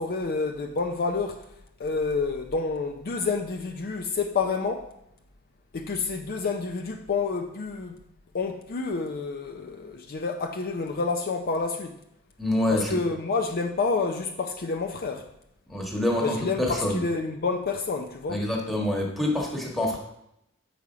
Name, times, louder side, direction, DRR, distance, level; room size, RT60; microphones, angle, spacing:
voice 1, 0.0-1.4 1.8-4.8 5.7-8.0 8.3-12.0 12.7-15.3 16.2-18.4, left 4 dB, 45° left, 0.5 m, -29 dB
voice 2, 12.4-13.0 15.7-17.0 18.3-20.0, left 1 dB, ahead, 1.4 m, -26 dB
6.9 x 4.9 x 4.9 m
head